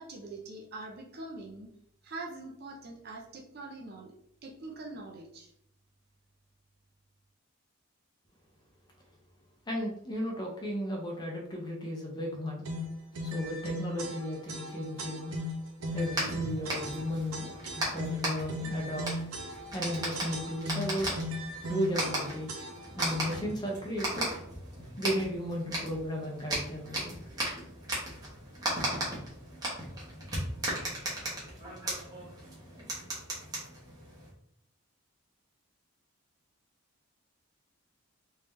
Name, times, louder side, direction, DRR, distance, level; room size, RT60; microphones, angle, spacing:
voice 1, 0.0-1.7 2.0-4.1 4.4-5.5, right 2 dB, 45° right, 1 dB, 0.7 m, -43 dB
voice 2, 9.7-12.6 13.2-15.3 15.9-17.5 17.8-19.1 19.7-21.1 21.7-22.6 23.0-24.3 25.0-27.2, equal, 20° left, -1 dB, 0.7 m, -35 dB
sound 1, 12.6-23.5, equal, 85° right, 0.7 m, -38 dB
sound 2, 15.9-34.3, right 1 dB, 15° right, 1.1 m, -37 dB
3.6 x 2.8 x 3.2 m, 0.72 s
head